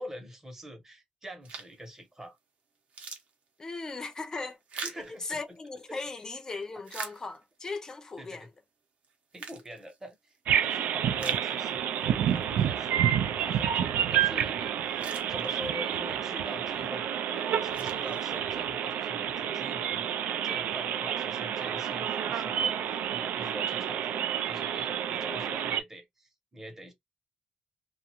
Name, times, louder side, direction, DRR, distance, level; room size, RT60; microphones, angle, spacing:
voice 1, 0.0-2.4 4.7-5.4 5.9-6.1 8.2-8.5 9.3-10.3 10.6-26.9, equal, 15° right, 0.9 m, -45 dB
sound 1, 1.4-1.9 2.4-2.5 2.8-5.9 6.5-7.7 8.3-8.4 9.0-10.4 10.8-10.9 11.2-12.0 12.4-12.5 14.5-14.6 14.8-15.9 16.5-16.9 17.4-18.7, right 5 dB, 50° right, 0.8 m, -44 dB
voice 2, 3.6-4.6 5.2-8.5 25.1-25.5, left 3 dB, 20° left, 0.5 m, -38 dB
sound 2, 10.5-25.8, right 9 dB, 85° right, 0.4 m, -29 dB
2.5 x 2.3 x 2.9 m
cardioid pair, 155°, 3 cm